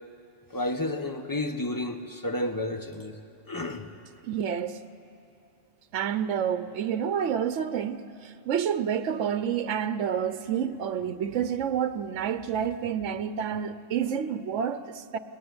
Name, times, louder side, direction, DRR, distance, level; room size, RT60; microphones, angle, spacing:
voice 1, 0.5-3.1 3.5-3.9, left 1 dB, 15° left, 1.2 m, -31 dB
voice 2, 4.2-4.8 5.9-15.2, right 8 dB, 70° right, 1.1 m, -29 dB
29.5 x 21.0 x 9.6 m
omnidirectional pair, 1.3 m